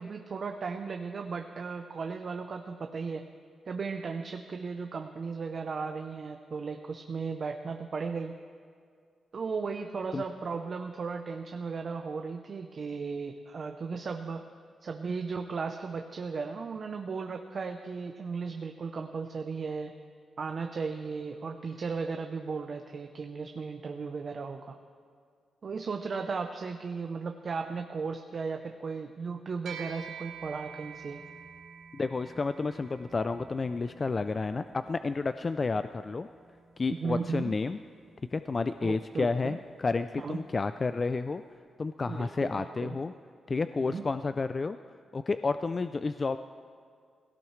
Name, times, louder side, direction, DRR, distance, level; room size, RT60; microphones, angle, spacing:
voice 1, 0.0-3.2 3.7-8.3 9.3-14.4 14.8-19.9 20.4-24.8 25.6-31.2 36.9-37.5 38.8-39.6 40.2-40.4 42.1-43.0 43.8-44.0, right 5 dB, 50° right, 5 dB, 0.7 m, -36 dB
sound 1, 29.7-39.3, right 6 dB, 80° right, 1.8 m, -49 dB
voice 2, 31.9-36.3 36.8-37.8 38.3-41.4 41.8-43.1 43.5-44.8 45.1-46.4, left 4 dB, 35° left, 11 dB, 0.3 m, -31 dB
18.0 x 17.0 x 3.2 m, 2.1 s
cardioid pair, 90°, 0 cm